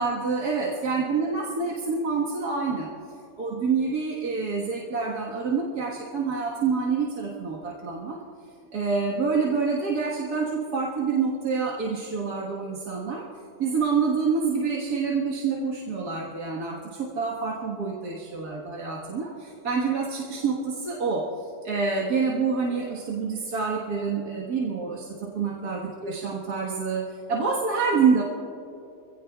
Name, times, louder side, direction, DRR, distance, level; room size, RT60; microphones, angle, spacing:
voice 1, 0.0-2.9 3.4-8.2 8.7-13.3 13.6-21.3 21.6-28.2, right 5 dB, 65° right, -3 dB, 2.1 m, -27 dB
26.5 x 17.5 x 2.4 m, 2.8 s
omnidirectional pair, 1.9 m